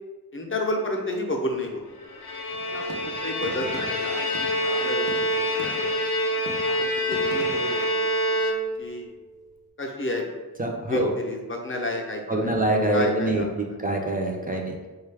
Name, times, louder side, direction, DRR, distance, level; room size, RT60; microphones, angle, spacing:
voice 1, 0.3-1.8 2.7-6.0 6.6-8.0 8.3-8.4 8.8-9.1 9.8-10.2 10.9-12.5 12.9-13.4, left 1 dB, 35° left, 1 dB, 0.6 m, -31 dB
Bowed string instrument, 2.0-9.0, equal, 75° left, 0.6 m, -26 dB
sound 1, 2.5-6.1 6.5-7.9, right 2 dB, 75° right, 0.6 m, -41 dB
voice 2, 10.6-11.1 12.3-13.4 13.8-14.7, right 1 dB, 25° right, 0 dB, 0.4 m, -24 dB
3.7 x 2.3 x 3.3 m, 1.2 s
wide cardioid pair, 85°, 38 cm